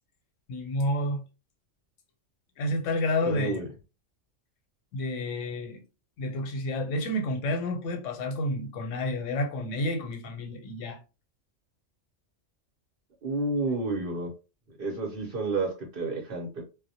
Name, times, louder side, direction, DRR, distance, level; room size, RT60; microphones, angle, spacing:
voice 1, 0.5-1.2 2.6-3.6 4.9-5.8 6.2-11.0, left 1 dB, 90° left, 1.0 m, -30 dB
voice 2, 3.2-3.6 13.2-14.3 14.8-16.6, right 3 dB, 55° right, 0.8 m, -30 dB
2.2 x 2.0 x 2.7 m
omnidirectional pair, 1.3 m